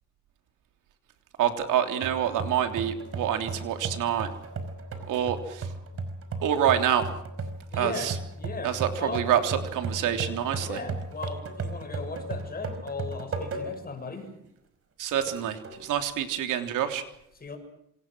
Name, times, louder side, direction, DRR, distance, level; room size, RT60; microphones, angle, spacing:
voice 1, 1.4-4.3 5.1-5.7 6.4-7.1 7.8-8.2 8.6-10.8 15.0-17.0, right 10 dB, 90° right, 6 dB, 3.4 m, -27 dB
sound 1, 2.0-13.9 14.4-14.5 15.3-15.8, right 3 dB, 45° right, 5.2 m, -36 dB
voice 2, 7.7-8.1 8.4-9.3 10.6-14.3 17.4-17.6, left 4 dB, 30° left, 5 dB, 7.0 m, -37 dB
27.5 x 26.5 x 6.3 m, 0.76 s
cardioid pair, 140°, 31 cm